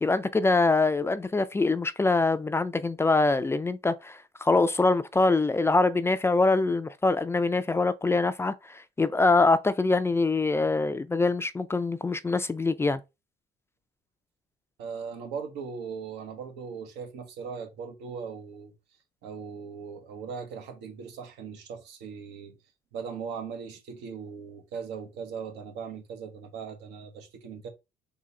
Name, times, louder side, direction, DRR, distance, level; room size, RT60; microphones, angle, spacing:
voice 1, 0.0-13.0, left 3 dB, 15° left, 0.3 m, -24 dB
voice 2, 14.8-18.7 19.2-22.6 22.9-27.7, right 6 dB, 90° right, 1.0 m, -39 dB
3.8 x 2.7 x 4.1 m
cardioid pair, 110°, 17 cm